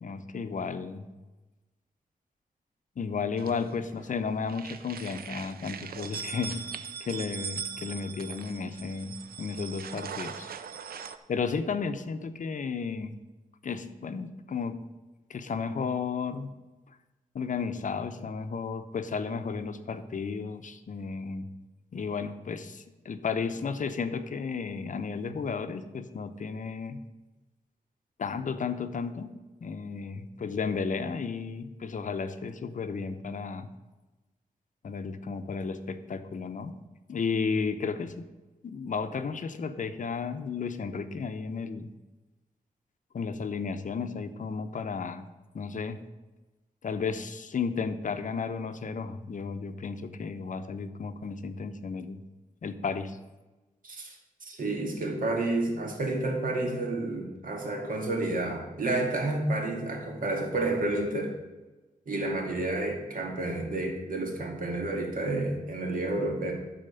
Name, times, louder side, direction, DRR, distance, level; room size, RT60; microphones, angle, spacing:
voice 1, 0.0-1.1 3.0-6.6 7.0-10.5 11.3-13.2 13.6-14.8 15.3-16.5 17.3-21.5 21.9-27.0 28.2-29.3 29.6-33.7 34.8-36.8 37.1-38.3 38.6-41.9 43.1-45.2 45.5-46.0 46.8-52.2 52.6-53.2, left 5 dB, 60° left, 9 dB, 0.7 m, -33 dB
sound 1, 3.4-4.1 4.4-11.2, right 7 dB, 85° right, 0.6 m, -40 dB
voice 2, 53.8-54.1 54.4-61.3 62.1-66.5, right 2 dB, 65° right, 1 dB, 2.1 m, -30 dB
11.5 x 4.2 x 6.9 m, 1.1 s
wide cardioid pair, 110°, 15 cm